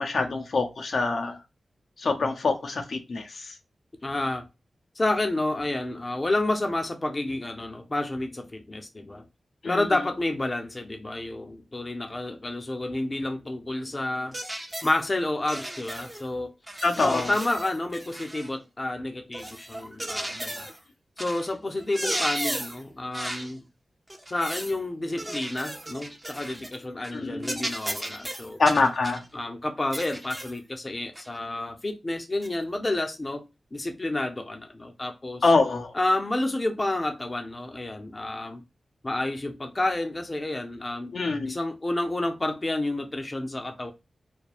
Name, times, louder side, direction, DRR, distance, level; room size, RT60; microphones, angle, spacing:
voice 1, 0.0-1.4 2.0-3.6 9.6-9.8 16.8-17.3 27.1-27.7 28.6-29.2 35.4-35.9 41.1-41.6, left 3 dB, 70° left, 0.6 m, -25 dB
voice 2, 4.0-4.5 5.0-9.2 9.6-14.4 14.8-16.5 17.0-20.7 21.2-23.6 24.3-28.6 29.3-33.4 33.7-35.4 35.9-38.6 39.0-41.1 41.5-43.9, left 2 dB, 30° left, 0.6 m, -30 dB
sound 1, 14.3-15.0 15.5-16.2 16.7-18.5 19.3-20.8 21.2-21.5 21.8-22.8 23.1-23.5 24.1-24.8 25.2-26.8 27.0-27.2 27.4-29.2 29.9-30.6 31.1-31.3 32.4-32.5, right 1 dB, 15° right, 0.7 m, -35 dB
3.4 x 2.2 x 2.3 m
wide cardioid pair, 70°, 0 cm